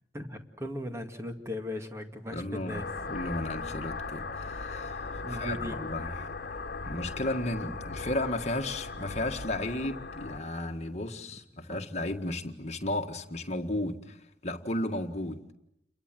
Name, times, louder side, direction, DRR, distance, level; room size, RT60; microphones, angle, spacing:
voice 1, 0.1-2.9 5.2-5.8 11.7-11.8, left 1 dB, 15° right, 2.2 m, -37 dB
voice 2, 2.3-6.3 6.8-15.4, left 1 dB, 40° left, 1.8 m, -34 dB
Mist pipe, 2.7-10.4, left 4 dB, 55° left, 1.5 m, -38 dB
29.5 x 22.5 x 7.7 m
head